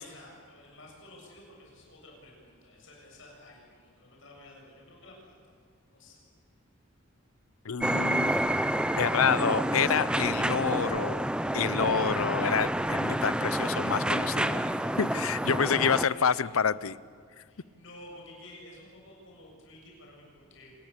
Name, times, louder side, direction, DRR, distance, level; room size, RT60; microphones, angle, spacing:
voice 1, 0.0-5.4 5.9-6.2 15.7-16.6 17.4-20.8, left 1 dB, 65° left, -1 dB, 7.5 m, -52 dB
voice 2, 7.6-8.3 9.0-11.2 11.5-14.6 15.0-17.0, left 6 dB, 85° left, 18 dB, 0.7 m, -28 dB
sound 1, 7.8-16.1, right 1 dB, 5° right, 0.6 m, -29 dB
27.0 x 21.5 x 8.5 m, 2.1 s
head